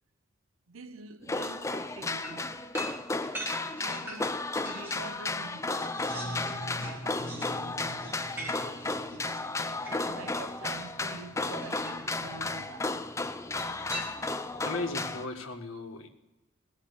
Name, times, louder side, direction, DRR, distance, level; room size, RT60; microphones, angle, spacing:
voice 1, 0.7-2.6 3.8-9.5 9.9-13.0, right 3 dB, 80° right, 0.7 m, -47 dB
sound 1, 1.2-15.3, left 3 dB, 15° left, 0.5 m, -34 dB
sound 2, 2.2-5.1 5.5-10.5 11.6-12.2 13.5-14.5, right 1 dB, 10° right, 2.4 m, -43 dB
sound 3, 5.9-9.6, equal, 40° left, 4.5 m, -44 dB
voice 2, 14.6-16.1, left 2 dB, 80° left, 1.6 m, -36 dB
17.5 x 7.4 x 8.3 m
head